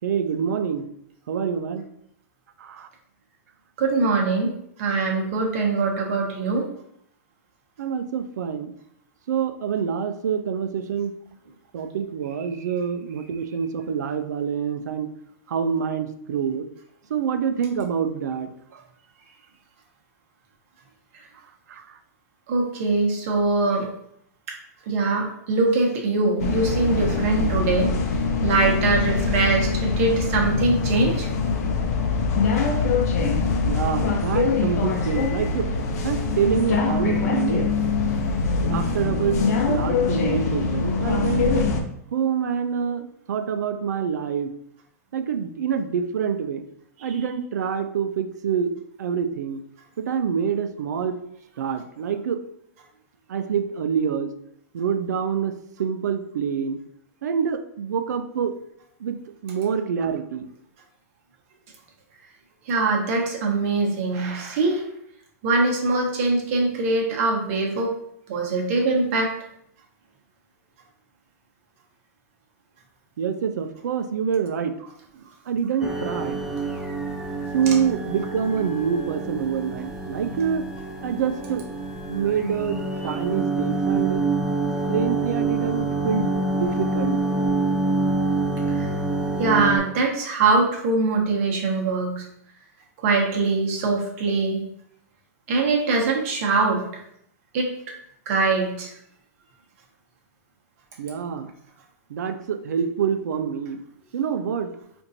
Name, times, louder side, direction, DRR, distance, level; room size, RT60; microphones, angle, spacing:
voice 1, 0.0-0.9 1.3-1.9 2.6-2.9 7.8-8.7 9.3-11.1 11.7-15.1 15.5-16.7 17.1-18.8 21.7-22.0 33.6-35.7 36.0-37.7 38.7-41.7 42.1-44.5 45.1-46.6 47.0-48.7 49.0-49.6 50.0-51.2 51.6-52.4 53.3-54.3 54.7-56.8 57.2-58.6 59.0-60.5 73.2-74.8 75.1-76.4 77.5-80.7 81.0-81.6 82.1-84.3 84.9-87.2 101.0-101.5 102.1-103.8 104.1-104.7, right 7 dB, 85° right, 9 dB, 0.4 m, -26 dB
voice 2, 3.8-4.5 4.8-6.6 22.5-23.9 24.9-27.9 28.4-31.3 62.7-64.8 65.4-67.9 68.3-69.3 88.7-88.9 89.4-92.2 93.0-94.6 95.5-96.8 97.5-97.7 98.3-98.9, right 3 dB, 50° right, 0 dB, 1.0 m, -22 dB
sound 1, 26.4-41.8, left 4 dB, 65° left, 0.6 m, -23 dB
sound 2, 75.8-89.8, right 3 dB, 5° right, 0.5 m, -26 dB
4.4 x 2.6 x 2.6 m, 0.72 s
hypercardioid pair, 145°, 9 cm